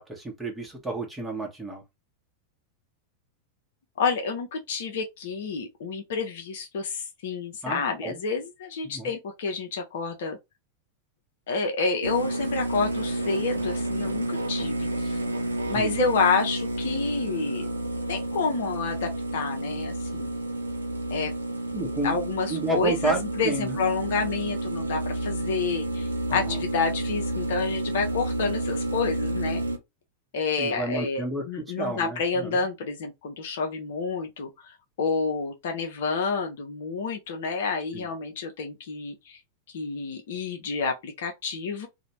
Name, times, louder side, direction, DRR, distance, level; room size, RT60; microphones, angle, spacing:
voice 1, 0.0-1.8 7.6-8.2 8.8-9.1 15.7-15.9 21.7-22.2 22.5-23.8 26.3-26.6 30.6-32.6 37.9-38.1, right 2 dB, 5° right, 0.8 m, -31 dB
voice 2, 4.0-10.4 11.5-15.2 15.7-17.7 18.1-20.3 21.1-21.3 22.0-29.6 30.3-39.4 39.7-41.9, left 4 dB, 55° left, 0.5 m, -29 dB
sound 1, 12.0-29.8, right 1 dB, 80° right, 0.5 m, -30 dB
2.5 x 2.0 x 2.9 m
figure-of-eight pair, 90°, 0 cm